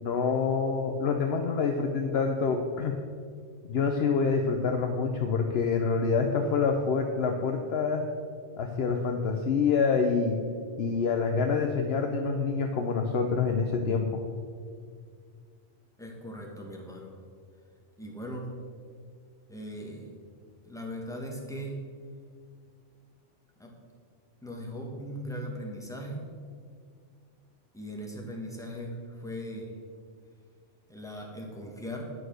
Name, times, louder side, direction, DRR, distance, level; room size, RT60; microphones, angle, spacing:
voice 1, 0.0-2.9 3.7-8.0 8.6-10.4 10.8-14.2, left 5 dB, 65° left, 4 dB, 0.9 m, -27 dB
voice 2, 16.0-17.1 18.0-18.5 19.5-20.1 20.6-21.8 23.6-23.7 24.4-26.2 27.7-29.7 30.9-32.0, equal, 5° left, -1 dB, 1.4 m, -39 dB
9.3 x 6.4 x 6.3 m, 2.1 s
omnidirectional pair, 1.2 m